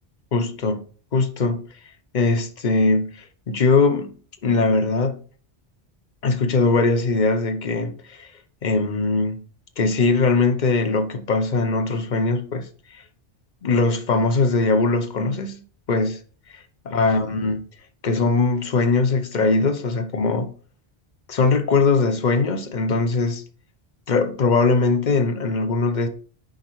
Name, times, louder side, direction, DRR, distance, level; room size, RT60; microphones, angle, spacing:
voice 1, 0.3-0.8 1.1-1.6 2.1-4.1 4.4-5.2 6.2-8.3 8.6-9.4 9.8-12.7 13.6-15.6 15.9-16.2 16.5-16.6 16.9-17.7 18.0-20.5 21.3-23.4 24.1-26.1, left 3 dB, 50° left, 0.9 m, -21 dB
7.9 x 5.4 x 3.1 m
omnidirectional pair, 1.1 m